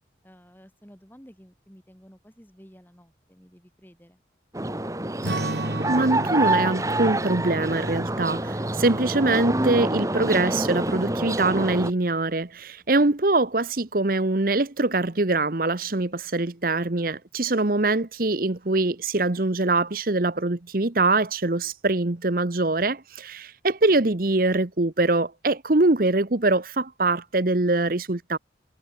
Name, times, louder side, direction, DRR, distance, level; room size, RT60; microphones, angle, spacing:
voice 1, 0.2-4.2, equal, 10° left, 7.7 m, -52 dB
sound 1, 4.5-11.9, right 1 dB, 15° right, 1.7 m, -27 dB
Strum, 5.2-9.9, right 1 dB, 65° right, 4.2 m, -35 dB
voice 2, 5.4-28.4, right 2 dB, 50° right, 1.1 m, -23 dB
head